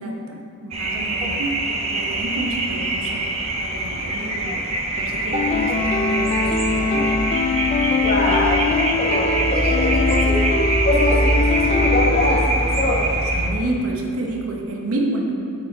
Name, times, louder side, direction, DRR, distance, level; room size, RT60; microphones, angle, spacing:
voice 1, 0.0-3.3 3.6-4.6 4.9-7.2 13.3-15.3, right 2 dB, 70° right, 0 dB, 1.0 m, -29 dB
sound 1, 0.7-13.5, right 1 dB, 30° right, 0.8 m, -23 dB
sound 2, 5.3-12.5, left 4 dB, 30° left, 0.4 m, -23 dB
voice 2, 7.9-10.4 10.8-13.0, left 1 dB, 45° left, -4 dB, 1.3 m, -23 dB
9.4 x 4.8 x 3.9 m, 3.0 s
head